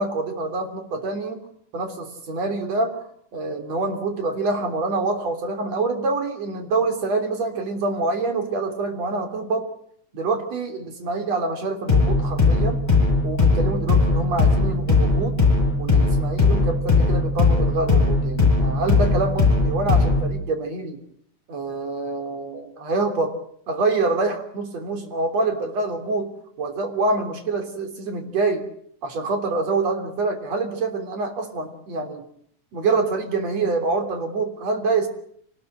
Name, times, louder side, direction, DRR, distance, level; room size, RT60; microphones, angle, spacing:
voice 1, 0.0-1.5 1.7-3.0 3.3-9.7 10.1-13.0 13.2-15.4 15.8-21.0 21.5-23.3 23.7-28.7 29.0-32.2 32.7-35.1, right 3 dB, 60° right, 6 dB, 4.4 m, -26 dB
sound 1, 11.9-20.4, left 3 dB, 10° left, 7.8 m, -19 dB
26.0 x 19.5 x 7.8 m, 0.65 s
omnidirectional pair, 3.4 m